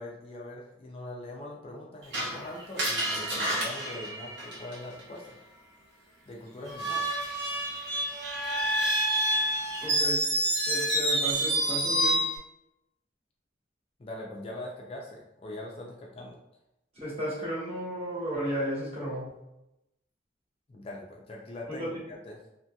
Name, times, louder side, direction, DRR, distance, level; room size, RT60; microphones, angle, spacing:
voice 1, 0.0-5.4 6.3-7.1 14.0-16.4 20.7-22.4, left 1 dB, 30° left, -2 dB, 0.3 m, -42 dB
Screech, 2.1-5.0 6.7-12.4, right 1 dB, 70° right, 0.8 m, -28 dB
voice 2, 9.8-10.2 10.7-12.2 16.9-19.3 21.8-22.0, right 1 dB, 35° right, -7 dB, 1.2 m, -33 dB
2.9 x 2.7 x 2.2 m, 0.88 s
head